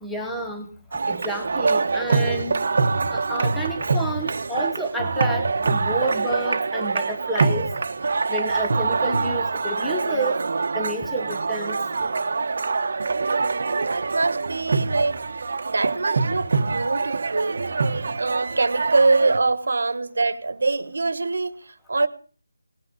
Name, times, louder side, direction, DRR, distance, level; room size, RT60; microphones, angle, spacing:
voice 1, 0.0-2.6 3.1-7.7 8.3-10.4 10.7-11.8, right 1 dB, ahead, 0.9 m, -30 dB
sound 1, 0.9-19.4, right 4 dB, 45° right, 1.1 m, -25 dB
voice 2, 13.1-15.2 15.7-17.6 18.2-22.1, right 3 dB, 60° right, 1.3 m, -24 dB
18.5 x 6.2 x 9.7 m
figure-of-eight pair, 175°, 0 cm